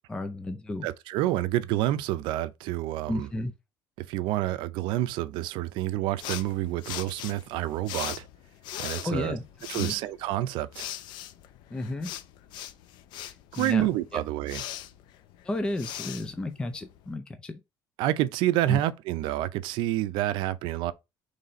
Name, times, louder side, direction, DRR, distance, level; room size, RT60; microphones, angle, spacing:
voice 1, 0.1-0.9 3.1-3.5 9.0-9.4 9.7-10.0 11.7-12.1 13.2-13.9 14.1-14.2 15.4-17.6 18.7-18.8, left 2 dB, 10° left, 0.4 m, -32 dB
voice 2, 0.8-3.3 4.0-8.3 8.8-9.4 9.7-10.9 13.5-14.6 18.0-20.9, right 14 dB, 85° right, 0.5 m, -28 dB
sound 1, 6.2-17.1, left 12 dB, 70° left, 0.4 m, -40 dB
4.1 x 3.2 x 3.8 m
cardioid pair, 165°, 8 cm